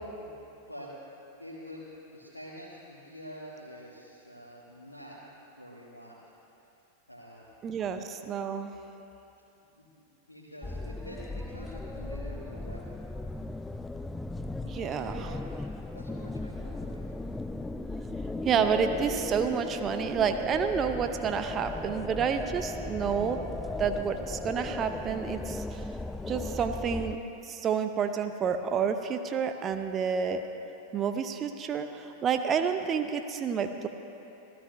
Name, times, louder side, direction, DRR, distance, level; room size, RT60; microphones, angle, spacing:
voice 1, 1.4-1.8 2.1-5.2 5.6-6.2 7.1-7.5 9.7-9.8 10.3-12.9 14.6-15.5 15.9-17.0, equal, 85° left, -6 dB, 1.5 m, -46 dB
voice 2, 7.6-8.7 14.7-15.4 18.4-23.4 23.8-25.8 26.3-27.2 27.5-30.4 30.9-33.9, right 7 dB, 25° right, 7 dB, 0.7 m, -29 dB
sound 1, 10.6-27.2, left 2 dB, 5° left, 0.4 m, -37 dB
26.0 x 15.0 x 2.7 m, 2.9 s
figure-of-eight pair, 90°, 0 cm